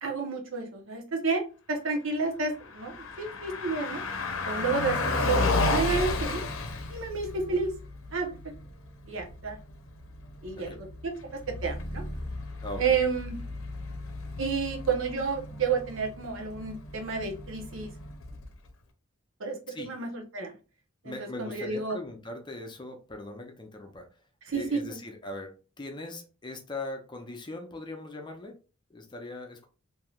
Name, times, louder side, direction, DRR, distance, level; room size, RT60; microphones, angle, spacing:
voice 1, 0.0-1.4 1.7-4.0 4.4-6.4 6.9-7.7 8.1-8.3 9.1-9.6 10.4-12.0 12.8-13.4 14.4-17.9 19.4-20.5 21.0-21.1 21.4-22.0 24.5-25.0, right 4 dB, 75° right, 3 dB, 0.8 m, -30 dB
Car passing by, 2.5-18.7, left 3 dB, 80° left, 0.6 m, -33 dB
voice 2, 12.6-13.0 19.7-19.9 21.0-24.1 24.5-28.6 28.9-29.7, left 2 dB, 20° left, 4 dB, 0.6 m, -40 dB
3.2 x 2.7 x 2.3 m, 0.34 s
head